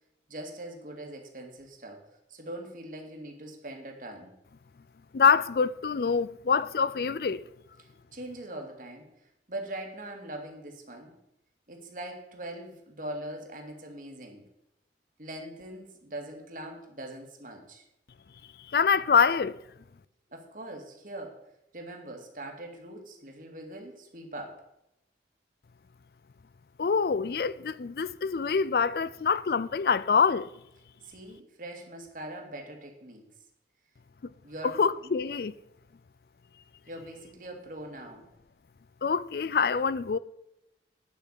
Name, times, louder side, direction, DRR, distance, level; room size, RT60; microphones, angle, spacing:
voice 1, 0.3-4.3 7.8-11.1 11.7-14.4 15.2-17.9 20.3-24.7 31.0-33.3 34.4-35.1 36.9-38.3, right 1 dB, 50° right, 2.1 m, -42 dB
voice 2, 5.1-7.4 18.7-19.6 26.8-30.5 34.6-35.5 39.0-40.2, left 5 dB, 55° left, 0.4 m, -25 dB
10.5 x 5.8 x 8.2 m
head